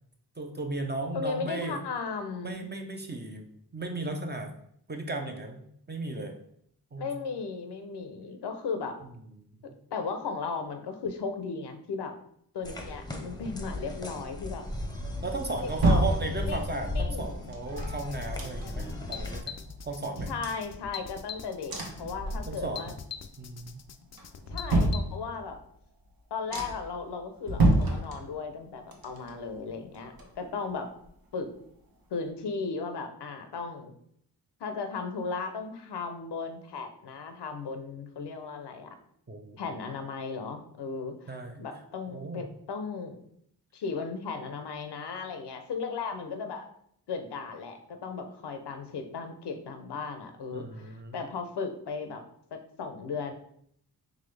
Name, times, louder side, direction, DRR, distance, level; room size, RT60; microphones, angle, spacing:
voice 1, 0.4-1.8 2.4-3.5 3.7-4.5 4.9-6.4 6.9-7.2 9.6-9.8 15.2-20.3 22.5-22.9 23.4-23.8 39.3-39.6 41.3-41.7 42.1-42.5 50.5-51.1, right 2 dB, 25° right, 3 dB, 0.6 m, -35 dB
voice 2, 1.1-2.7 7.0-9.0 9.9-12.2 12.5-14.7 15.6-16.1 16.5-17.5 20.3-22.9 24.5-25.6 26.3-30.9 31.3-31.5 32.1-33.9 34.6-39.0 39.6-41.3 41.6-43.2 43.7-46.7 47.1-52.2 52.5-53.3, left 4 dB, 75° left, 7 dB, 0.7 m, -36 dB
sound 1, 12.6-19.4, left 2 dB, 10° left, 0.8 m, -36 dB
sound 2, 15.1-16.8 17.5-19.0 19.3-19.4 19.7-21.3 21.7-22.9 23.2-23.7 24.1-25.6 26.1-26.2 26.5-27.0 27.4-28.6 28.9-30.7 31.0-31.1, right 1 dB, 60° right, 1.0 m, -29 dB
sound 3, 17.8-25.0, left 7 dB, 40° left, 0.4 m, -43 dB
3.9 x 3.1 x 3.3 m, 0.68 s
cardioid pair, 60°, 41 cm